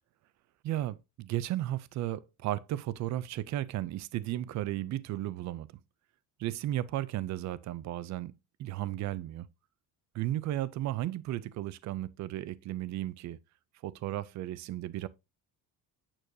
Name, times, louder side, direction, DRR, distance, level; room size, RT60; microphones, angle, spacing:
voice 1, 0.6-5.7 6.4-8.3 8.6-9.5 10.1-13.4 13.8-15.1, right 14 dB, 50° right, 0.5 m, -34 dB
8.9 x 6.4 x 2.7 m
cardioid pair, 165°, 37 cm